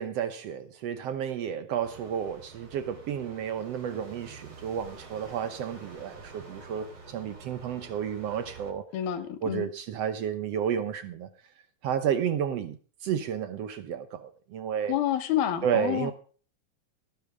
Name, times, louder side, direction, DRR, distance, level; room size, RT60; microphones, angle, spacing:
voice 1, 0.0-8.8 9.4-11.3 11.8-12.8 13.0-14.9 15.6-16.1, right 8 dB, 80° right, 1.4 m, -31 dB
sound 1, 1.8-8.7, right 4 dB, 45° right, 4.6 m, -48 dB
voice 2, 8.9-9.7 14.9-16.1, left 11 dB, 85° left, 3.2 m, -28 dB
17.5 x 10.0 x 3.5 m
omnidirectional pair, 4.1 m